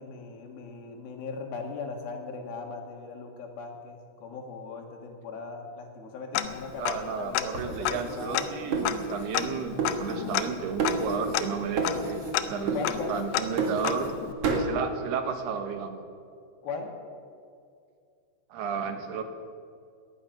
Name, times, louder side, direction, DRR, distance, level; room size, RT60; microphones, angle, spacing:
voice 1, 0.0-8.5 12.7-13.2 16.6-16.9, left 4 dB, 75° left, 2 dB, 3.6 m, -38 dB
Tick-tock, 6.3-7.1 7.3-7.4 7.8-14.3, left 12 dB, 90° left, 2.7 m, -32 dB
voice 2, 6.8-12.2 12.5-14.1 14.5-16.0 18.5-19.2, right 6 dB, 90° right, 7 dB, 3.3 m, -33 dB
sound 1, 7.5-9.5 9.8-10.5 10.8-11.5 11.8-12.4 12.7-14.2 14.4-14.7, right 4 dB, 45° right, 2.4 m, -31 dB
18.5 x 12.0 x 5.9 m, 2.3 s
omnidirectional pair, 4.5 m